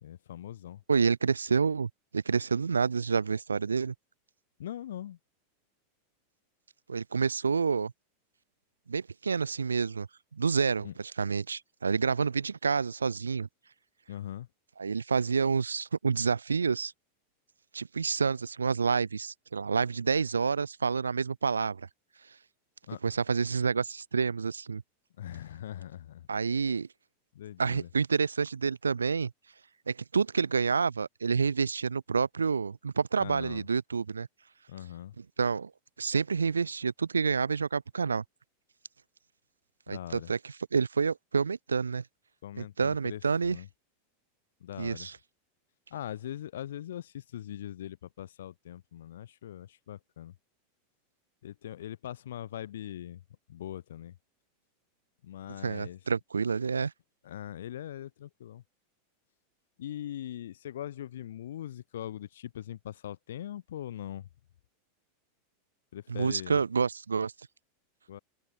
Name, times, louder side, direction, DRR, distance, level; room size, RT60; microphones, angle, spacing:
voice 1, 0.0-0.8 4.6-5.2 10.8-10.9 14.1-14.5 22.9-23.0 25.2-26.3 27.3-27.9 33.2-33.6 34.7-35.1 39.9-40.3 42.4-43.7 44.6-45.1 45.9-50.3 51.4-53.2 53.5-54.2 55.2-56.0 57.2-58.6 59.8-64.3 65.9-66.6 68.1-68.2, left 11 dB, 65° left, 4.1 m, -41 dB
voice 2, 0.9-3.9 6.9-7.9 8.9-10.1 10.3-10.9 11.2-13.5 14.8-16.9 17.7-21.9 23.0-24.8 26.3-26.9 27.6-29.3 29.9-34.3 35.4-35.7 36.0-38.2 39.9-42.0 42.6-43.6 44.8-45.2 55.6-56.9 66.1-67.3, right 5 dB, 80° right, 0.4 m, -28 dB
open air
figure-of-eight pair, 85°, 0 cm